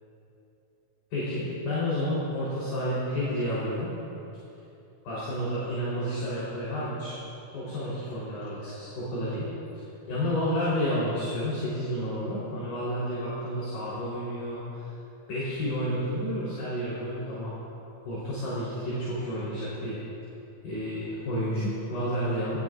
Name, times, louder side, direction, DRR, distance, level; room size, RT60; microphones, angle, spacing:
voice 1, 1.1-3.9 5.0-7.2 7.5-9.5 10.1-14.9 15.3-17.5 18.0-20.0 20.6-22.6, equal, 55° left, -9 dB, 6.0 m, -30 dB
28.5 x 18.5 x 2.7 m, 2.8 s
omnidirectional pair, 5.3 m